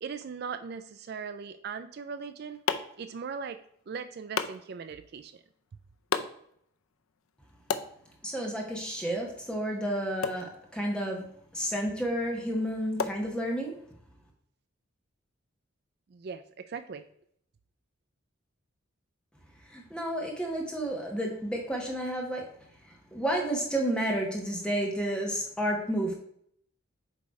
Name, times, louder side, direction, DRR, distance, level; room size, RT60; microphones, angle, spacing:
voice 1, 0.0-2.6 3.0-3.6 3.9-5.4 16.1-17.0, right 6 dB, 50° right, 10 dB, 0.3 m, -39 dB
sound 1, 2.0-13.9, left 5 dB, 85° left, 0.6 m, -39 dB
voice 2, 8.2-11.2 11.5-13.7 19.7-22.5 23.1-26.1, right 1 dB, 5° left, 0 dB, 1.2 m, -31 dB
8.2 x 3.2 x 4.7 m, 0.68 s
head